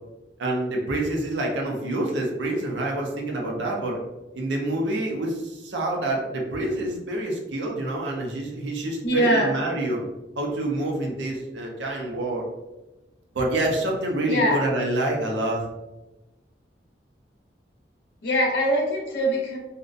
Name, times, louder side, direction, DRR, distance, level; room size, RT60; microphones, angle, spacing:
voice 1, 0.4-4.0 4.3-10.0 10.4-12.5 13.3-15.7, right 1 dB, 90° right, 0 dB, 0.5 m, -27 dB
voice 2, 9.0-9.6 14.3-14.6 18.2-19.6, equal, 70° left, -1 dB, 0.6 m, -22 dB
2.6 x 2.1 x 2.4 m, 1.0 s
head